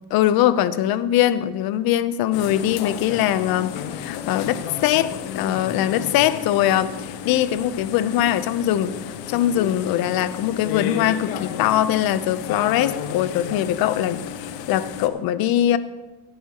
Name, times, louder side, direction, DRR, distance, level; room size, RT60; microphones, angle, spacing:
voice 1, 0.1-15.8, left 12 dB, 45° left, 14 dB, 0.8 m, -22 dB
sound 1, 2.3-15.1, left 9 dB, 80° left, 1.1 m, -33 dB
17.0 x 11.0 x 3.0 m, 1.1 s
supercardioid pair, 120°, 48 cm